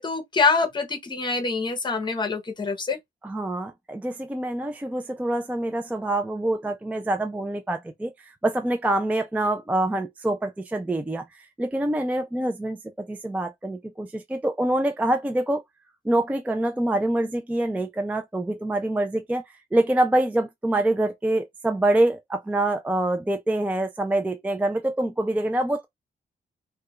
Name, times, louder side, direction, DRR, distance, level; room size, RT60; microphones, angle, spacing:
voice 1, 0.0-3.0, left 4 dB, 25° left, 0.8 m, -25 dB
voice 2, 3.2-15.6 16.0-19.4 19.7-25.8, right 1 dB, 10° right, 0.3 m, -25 dB
2.3 x 2.2 x 2.9 m
cardioid pair, 115°, 18 cm